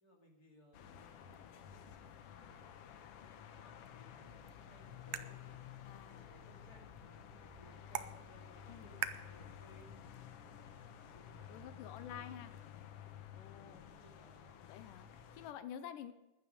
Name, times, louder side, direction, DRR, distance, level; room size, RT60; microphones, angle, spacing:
voice 1, 0.0-3.3 3.6-5.6 6.1-9.9 10.4-12.3 13.2-14.5, equal, 30° left, 0 dB, 2.6 m, -64 dB
sound 1, 0.7-15.5, left 9 dB, 70° left, 1.4 m, -53 dB
sound 2, 4.2-10.3, right 12 dB, 90° right, 2.4 m, -48 dB
voice 2, 5.8-6.3 8.7-8.9 11.5-12.5 13.3-13.9 14.7-15.1 15.3-16.1, left 9 dB, 90° left, 11 dB, 2.4 m, -49 dB
15.0 x 11.0 x 5.2 m, 0.97 s
omnidirectional pair, 3.7 m